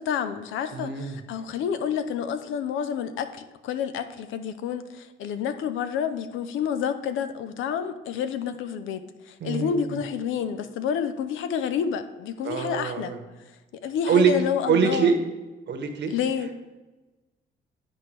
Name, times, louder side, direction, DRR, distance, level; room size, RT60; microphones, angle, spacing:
voice 1, 0.0-13.1 13.4-13.5 13.8-15.1 16.1-16.5, left 8 dB, 85° left, 11 dB, 0.6 m, -29 dB
voice 2, 0.7-1.2 9.4-10.0 12.4-13.2 14.1-14.4 14.7-15.2 15.7-16.1, right 6 dB, 60° right, 6 dB, 1.1 m, -24 dB
10.0 x 4.4 x 3.3 m, 1.2 s
cardioid pair, 90°, 20 cm